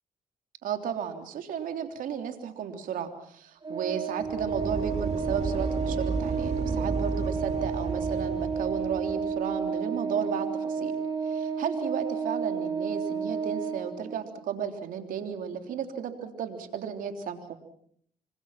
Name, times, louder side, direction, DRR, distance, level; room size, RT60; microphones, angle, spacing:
voice 1, 0.6-10.9 11.2-17.4, right 7 dB, 75° right, 6 dB, 3.5 m, -34 dB
Organ, 3.6-14.3, right 5 dB, 35° right, 5.6 m, -31 dB
sound 1, 4.2-9.4, right 4 dB, 55° right, 4.5 m, -33 dB
26.5 x 25.5 x 5.9 m, 0.64 s
supercardioid pair, 55°, 14 cm